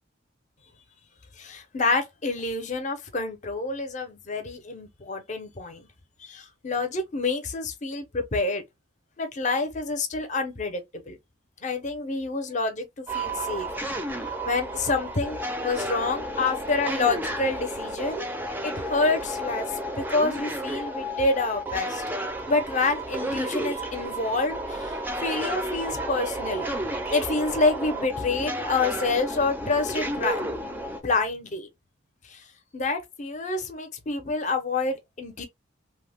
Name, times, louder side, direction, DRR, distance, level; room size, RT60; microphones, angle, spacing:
voice 1, 1.4-5.9 6.2-8.6 9.2-11.2 11.6-13.7 14.5-15.4 15.6-18.3 18.6-19.7 20.0-22.0 22.5-26.7 27.1-31.7 32.3-32.4 32.7-35.4, left 3 dB, 40° left, 0.6 m, -28 dB
sound 1, 13.1-31.0, right 1 dB, 10° right, 0.4 m, -32 dB
2.9 x 2.1 x 3.3 m
head